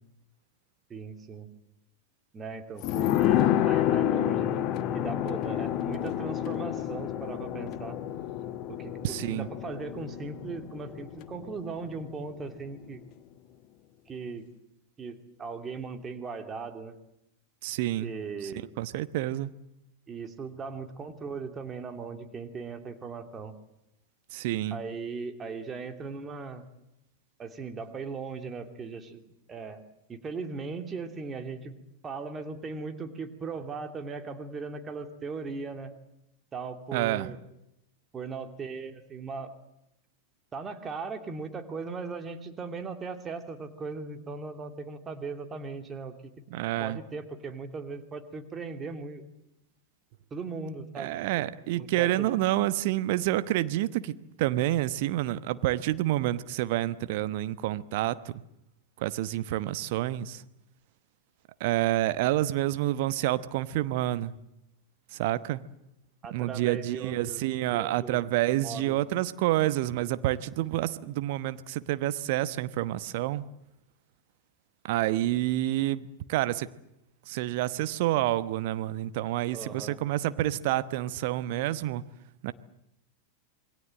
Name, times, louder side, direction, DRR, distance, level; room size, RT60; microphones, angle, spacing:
voice 1, 0.9-1.5 2.3-4.7 4.9-8.0 8.7-13.0 14.1-14.4 15.0-17.0 18.0-18.7 20.1-23.5 24.7-26.6 27.4-29.2 29.5-29.8 30.1-31.7 32.0-35.9 36.5-37.4 38.1-39.5 40.5-46.3 46.8-49.2 50.3-51.5 51.7-52.4 66.2-67.4 67.7-68.2 68.5-69.0 79.5-80.0, right 4 dB, 20° right, 6 dB, 2.6 m, -38 dB
sound 1, 2.8-12.1 12.4-12.5, left 12 dB, 40° left, 1.2 m, -29 dB
voice 2, 9.0-9.5 17.6-18.1 18.4-19.5 24.3-24.8 36.9-37.3 46.5-47.0 51.0-58.3 59.0-60.4 61.6-64.3 65.1-65.6 66.3-73.4 74.9-76.7 77.3-82.0 82.4-82.5, right 15 dB, 50° right, 14 dB, 1.0 m, -28 dB
27.0 x 22.0 x 7.6 m, 0.84 s
figure-of-eight pair, 90°, 0 cm